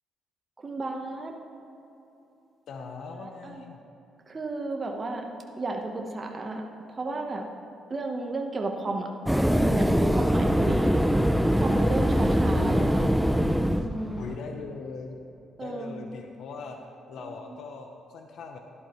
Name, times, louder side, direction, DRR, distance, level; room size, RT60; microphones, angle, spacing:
voice 1, 0.6-1.3 3.2-3.6 4.3-5.3 5.6-7.5 7.9-9.1 9.5-11.1 11.6-13.1 13.7-14.3 15.6-16.1 17.2-17.6, right 2 dB, 30° right, 1 dB, 1.0 m, -33 dB
voice 2, 2.7-3.8 12.5-12.9 14.2-15.2 15.6-16.8 17.1-18.6, left 4 dB, 70° left, 4 dB, 0.7 m, -39 dB
sound 1, 9.3-14.3, equal, ahead, 0.4 m, -23 dB
12.0 x 11.5 x 3.1 m, 3.0 s
cardioid pair, 90°, 0 cm